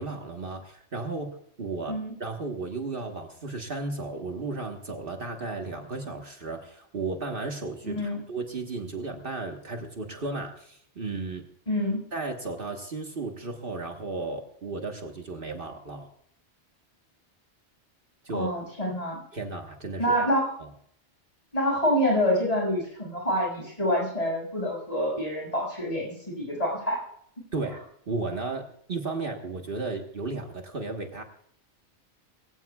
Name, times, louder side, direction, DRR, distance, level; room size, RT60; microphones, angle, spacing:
voice 1, 0.0-1.3 1.6-11.4 12.1-16.1 18.2-18.5 19.3-20.1 27.5-31.2, right 3 dB, 50° right, 3 dB, 1.5 m, -34 dB
voice 2, 7.8-8.2 11.7-12.0 18.3-19.2 20.0-20.5 21.5-27.0, equal, 30° left, -1 dB, 6.4 m, -27 dB
22.0 x 16.5 x 2.3 m, 0.67 s
omnidirectional pair, 1.2 m